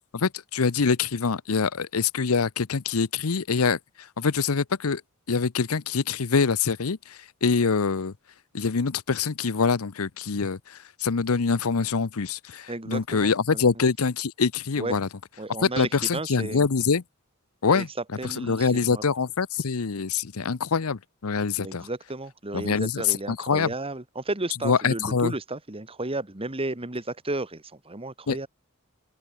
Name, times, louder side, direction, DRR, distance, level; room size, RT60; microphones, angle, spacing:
voice 1, 0.1-5.0 5.3-8.1 8.5-15.1 15.6-17.0 17.6-17.9 18.2-21.9 22.5-23.7 24.6-25.3 28.3-28.4, left 5 dB, 80° left, 0.8 m, -25 dB
voice 2, 12.7-13.6 14.8-15.0 15.4-16.6 17.7-17.9 18.2-19.0 21.6-28.5, right 2 dB, 25° right, 2.0 m, -33 dB
open air
head